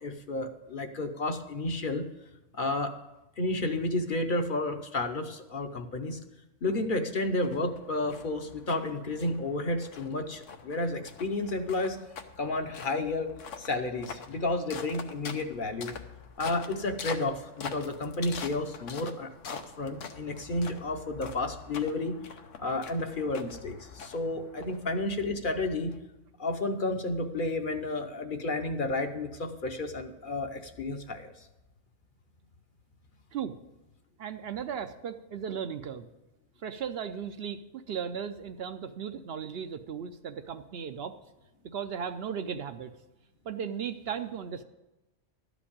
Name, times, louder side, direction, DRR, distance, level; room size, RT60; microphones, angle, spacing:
voice 1, 0.0-2.1 2.5-3.0 3.4-6.2 6.6-12.0 12.4-13.3 13.6-15.9 16.4-22.1 22.6-26.0 26.4-31.3, left 2 dB, 50° left, 6 dB, 0.9 m, -31 dB
sound 1, 7.4-25.1, left 6 dB, 85° left, 1.2 m, -45 dB
voice 2, 34.2-36.1 36.6-41.2 41.6-42.9 43.4-44.6, right 7 dB, 65° right, 9 dB, 0.7 m, -36 dB
12.5 x 5.2 x 8.5 m, 1.0 s
omnidirectional pair, 1.2 m